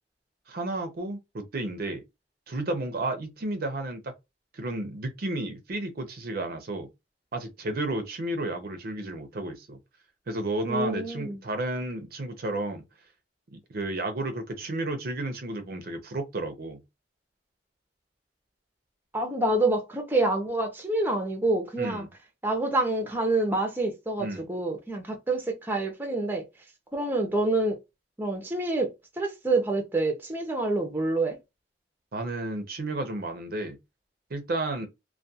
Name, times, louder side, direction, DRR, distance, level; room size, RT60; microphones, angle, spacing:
voice 1, 0.5-2.0 2.5-4.1 4.5-6.9 7.3-9.8 10.3-12.8 13.5-16.8 21.8-22.1 24.2-24.4 32.1-33.8 34.3-34.9, right 2 dB, 55° right, 0.5 m, -32 dB
voice 2, 10.7-11.4 19.1-22.1 22.4-26.4 26.9-27.8 28.2-28.9 29.2-31.4, right 2 dB, 10° right, 0.5 m, -27 dB
2.2 x 2.2 x 2.6 m
head